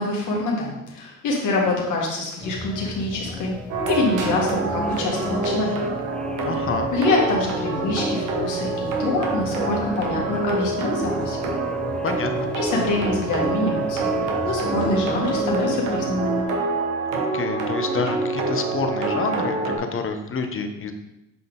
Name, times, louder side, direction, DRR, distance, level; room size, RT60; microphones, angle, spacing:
voice 1, 0.0-3.5 3.9-5.8 6.9-8.7 9.0-11.5 12.5-16.4, left 2 dB, 85° left, -2 dB, 1.7 m, -25 dB
sound 1, 2.4-16.4, left 1 dB, 5° left, 0.4 m, -35 dB
sound 2, 3.7-19.8, right 3 dB, 90° right, 1.1 m, -26 dB
voice 2, 6.4-6.9 12.0-12.5 17.1-20.9, left 4 dB, 45° left, 6 dB, 0.9 m, -28 dB
7.6 x 3.9 x 3.8 m, 0.91 s
cardioid pair, 90°, 30 cm